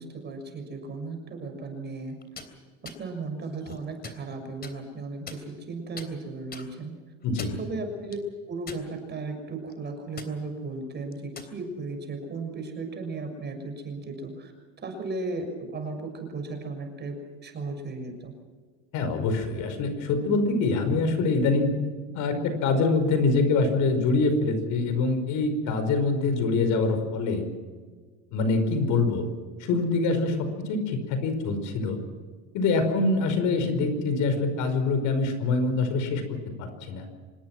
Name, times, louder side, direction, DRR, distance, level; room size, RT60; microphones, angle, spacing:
voice 1, 0.0-2.2 2.8-7.0 7.6-8.2 8.5-14.5 14.8-18.3, right 3 dB, 30° right, 5 dB, 6.6 m, -35 dB
sound 1, 2.2-2.5 2.8-3.0 3.6-4.2 4.6-4.7 5.3-5.7 6.0-6.1 6.5-6.7 7.2-7.6 8.1-8.2 8.7-9.2 9.5-9.7 10.2-10.3 11.1-11.5, left 5 dB, 30° left, 3.4 m, -41 dB
voice 2, 7.2-7.6 18.9-21.7 22.1-27.4 28.3-29.3 29.6-32.0 32.5-37.1, left 3 dB, 60° left, 8 dB, 5.2 m, -25 dB
26.0 x 20.0 x 6.1 m, 1.5 s
supercardioid pair, 120°, 34 cm